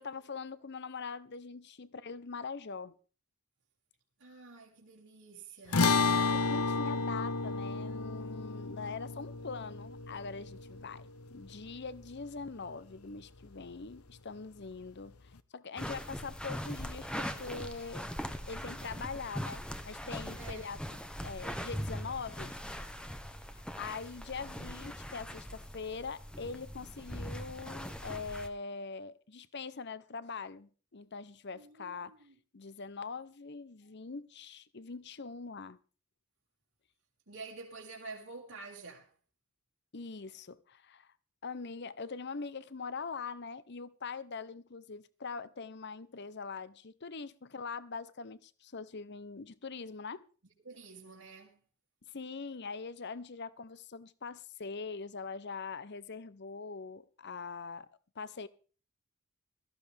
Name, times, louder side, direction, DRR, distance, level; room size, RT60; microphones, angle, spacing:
voice 1, 0.0-2.9 6.5-18.1 18.5-20.8 21.2-22.5 23.5-32.1 32.5-35.8 39.9-41.1 41.4-50.2 52.1-57.9 58.1-58.5, left 4 dB, 50° left, 0.8 m, -43 dB
voice 2, 4.2-6.2 20.3-20.9 31.5-32.4 37.3-39.1 50.6-51.6, right 4 dB, 80° right, 3.0 m, -49 dB
sound 1, 5.7-12.2, left 4 dB, 85° left, 0.9 m, -32 dB
sound 2, 15.8-28.5, equal, 5° left, 1.1 m, -41 dB
17.0 x 14.5 x 3.5 m
head